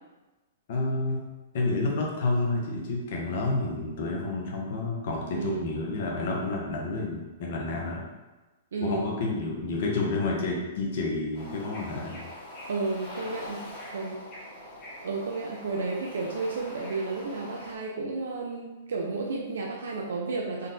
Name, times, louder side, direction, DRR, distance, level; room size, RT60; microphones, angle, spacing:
voice 1, 0.7-1.2 1.5-8.0 8.8-12.2, left 2 dB, 60° left, -1 dB, 0.7 m, -29 dB
voice 2, 5.3-5.7 8.7-9.0 12.7-13.6 13.9-14.2 15.0-20.7, right 3 dB, 80° right, -1 dB, 0.4 m, -32 dB
Bird / Ocean, 11.3-17.8, left 1 dB, 35° left, 1.1 m, -43 dB
3.8 x 2.2 x 2.6 m, 1.2 s
hypercardioid pair, 135°, 0 cm